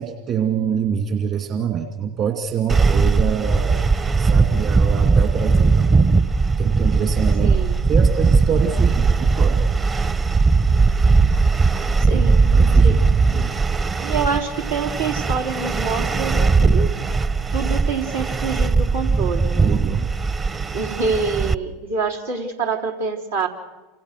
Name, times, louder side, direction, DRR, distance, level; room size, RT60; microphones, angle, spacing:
voice 1, 0.0-3.8 4.2-5.9 6.6-7.6 7.9-9.6 12.1-13.5 19.6-20.7, right 7 dB, 40° right, 6 dB, 2.5 m, -25 dB
sound 1, 2.7-21.5, right 4 dB, 25° right, 1.0 m, -18 dB
voice 2, 7.4-7.9 12.0-12.4 12.8-13.0 14.0-17.0 17.5-19.8 20.7-23.5, right 5 dB, 85° right, -1 dB, 3.8 m, -26 dB
28.5 x 27.0 x 6.7 m, 1.2 s
hypercardioid pair, 85°, 0 cm